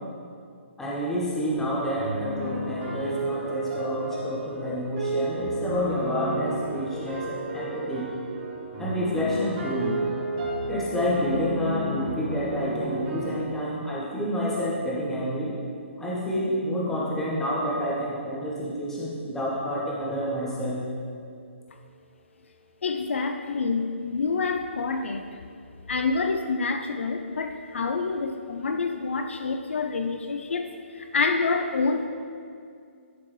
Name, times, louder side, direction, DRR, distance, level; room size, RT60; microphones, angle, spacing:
voice 1, 0.8-8.1 8.8-9.9 10.7-15.5 16.0-20.8, equal, 5° left, -6 dB, 1.2 m, -29 dB
sound 1, 1.3-13.4, right 1 dB, 30° right, 1.8 m, -32 dB
voice 2, 22.8-25.4 25.9-32.1, left 4 dB, 65° left, 6 dB, 0.5 m, -27 dB
11.0 x 4.5 x 3.2 m, 2.3 s
figure-of-eight pair, 145°, 7 cm